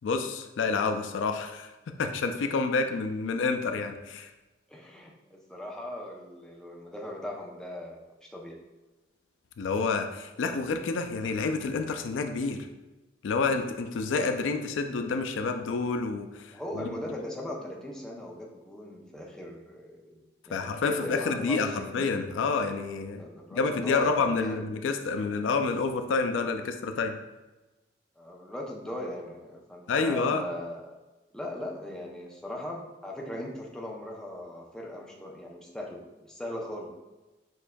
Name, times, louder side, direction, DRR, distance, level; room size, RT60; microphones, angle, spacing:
voice 1, 0.0-4.3 9.6-12.7 13.2-17.0 20.5-23.2 23.5-27.2 29.9-30.4, left 4 dB, 85° left, 6 dB, 0.4 m, -29 dB
voice 2, 4.7-8.6 16.5-22.0 23.2-24.6 28.2-30.8 31.3-36.9, left 1 dB, 5° left, -2 dB, 0.5 m, -39 dB
6.3 x 2.6 x 2.2 m, 1.1 s
head